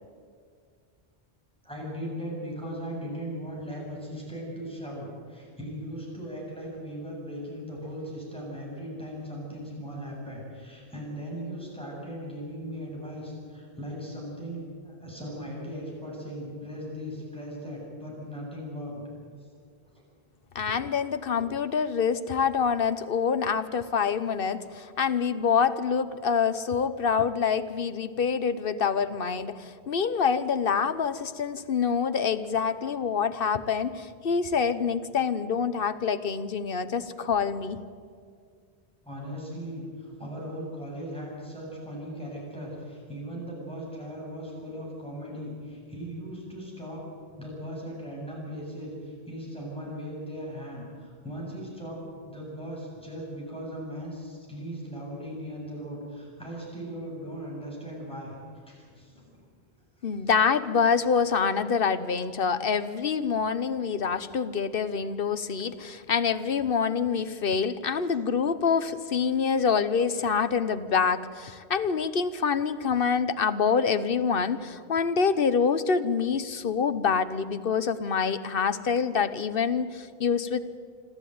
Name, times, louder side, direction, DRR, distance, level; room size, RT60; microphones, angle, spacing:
voice 1, 1.6-19.0 19.9-20.0 39.0-47.0 47.4-58.3 58.7-59.4 60.0-60.2, equal, 5° left, -4 dB, 7.8 m, -38 dB
voice 2, 20.5-37.8 60.0-80.6, left 6 dB, 60° left, 12 dB, 1.1 m, -26 dB
26.5 x 14.0 x 9.4 m, 2.1 s
omnidirectional pair, 1.1 m